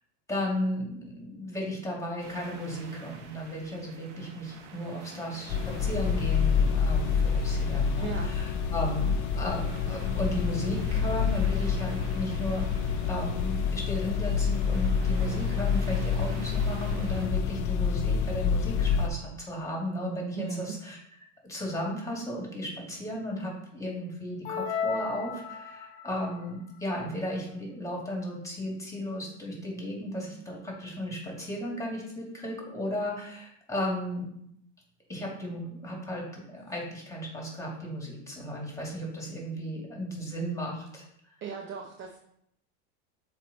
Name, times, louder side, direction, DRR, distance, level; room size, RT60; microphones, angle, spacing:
voice 1, 0.3-12.7 13.0-21.0 21.4-34.3 35.1-41.0, equal, 10° left, -2 dB, 2.2 m, -35 dB
sound 1, 2.2-17.3, right 5 dB, 80° right, 1.1 m, -48 dB
sound 2, 5.5-19.1, left 6 dB, 55° left, 0.6 m, -27 dB
voice 2, 8.0-8.4 20.3-20.7 41.4-42.2, right 6 dB, 35° right, 2 dB, 0.7 m, -37 dB
sound 3, 24.4-26.1, left 4 dB, 80° left, 1.1 m, -33 dB
7.3 x 3.2 x 4.1 m, 0.73 s
supercardioid pair, 105°, 35 cm